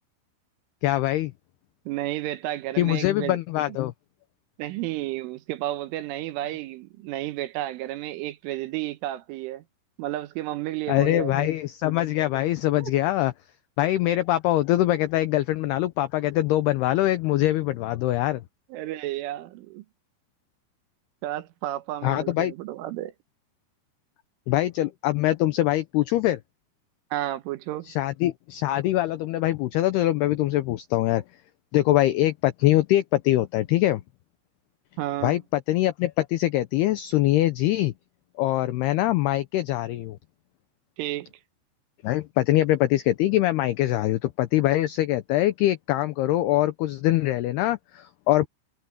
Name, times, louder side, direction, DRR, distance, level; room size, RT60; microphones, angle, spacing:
voice 1, 0.8-1.3 2.8-3.9 10.9-13.3 13.8-18.4 22.0-22.5 24.5-26.4 27.9-31.2 31.7-34.0 35.2-37.9 38.4-40.2 42.0-48.5, left 15 dB, 90° left, 2.2 m, -23 dB
voice 2, 1.9-3.4 4.6-9.6 10.0-11.5 12.8-12.9 18.7-19.9 21.2-23.1 27.1-27.9 35.0-35.4 41.0-41.3, right 15 dB, 80° right, 3.7 m, -32 dB
omnidirectional pair, 5.7 m